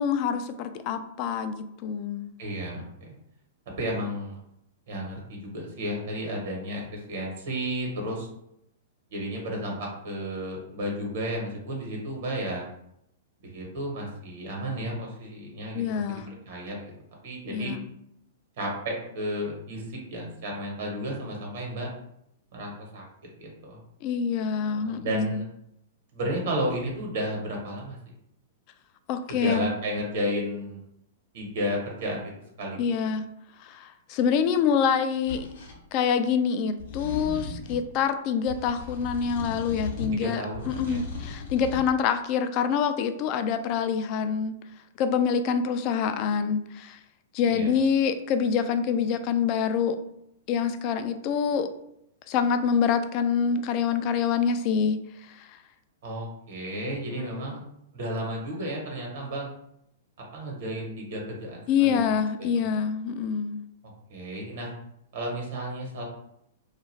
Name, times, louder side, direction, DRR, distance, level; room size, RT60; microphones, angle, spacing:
voice 1, 0.0-2.3 15.7-16.3 17.5-17.9 24.0-25.4 29.1-29.7 32.8-33.3 33.6-35.5 35.9-44.5 45.0-47.0 47.3-50.0 50.5-51.7 52.3-55.6 56.9-57.5 61.7-63.6, left 7 dB, 45° left, 9 dB, 0.3 m, -26 dB
voice 2, 2.4-3.1 3.8-4.4 4.9-8.3 9.1-12.6 13.4-16.2 16.5-16.9 17.2-17.8 18.6-21.9 22.5-23.0 23.4-23.8 24.7-25.5 26.1-28.0 29.4-30.8 31.3-32.3 32.6-32.8 40.2-41.0 47.5-47.7 56.0-57.6 57.9-59.5 60.3-62.0 64.1-64.7 65.1-66.0, equal, 65° right, -1 dB, 1.0 m, -32 dB
sound 1, 35.3-35.8 36.8-37.9 38.5-40.2 40.5-41.9, left 4 dB, 70° left, 0.8 m, -37 dB
2.4 x 2.4 x 3.1 m, 0.77 s
hypercardioid pair, 115°, 0 cm